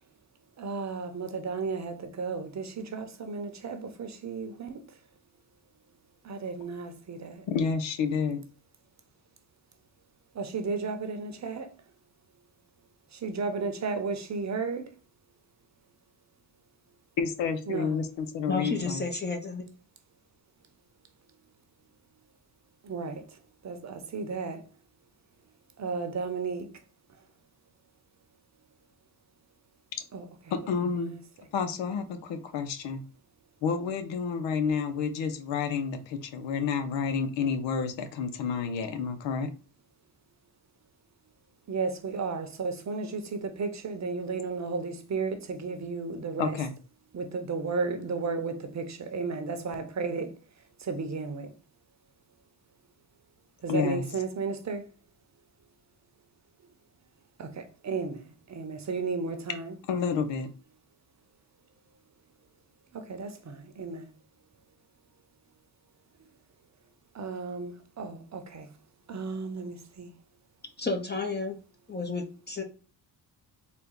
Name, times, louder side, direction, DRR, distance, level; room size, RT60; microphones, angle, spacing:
voice 1, 0.6-4.8 6.2-7.4 10.3-11.7 13.1-14.8 17.7-18.0 22.8-23.2 23.6-24.6 25.8-26.7 30.1-30.2 30.9-31.2 41.7-46.6 47.1-50.3 50.8-51.5 53.6-54.8 57.4-59.8 62.9-64.1 67.1-68.7 69.1-70.1, right 4 dB, 40° right, 0.8 m, -34 dB
voice 2, 7.5-8.4 17.2-19.1 30.5-31.2 31.5-33.0 33.6-39.5 46.4-46.7 53.7-54.0 59.9-60.5, left 6 dB, 80° left, 0.8 m, -30 dB
voice 3, 18.5-19.6 70.8-71.6 71.9-72.6, left 3 dB, 25° left, 0.7 m, -31 dB
4.2 x 2.2 x 3.7 m
cardioid pair, 90°, 44 cm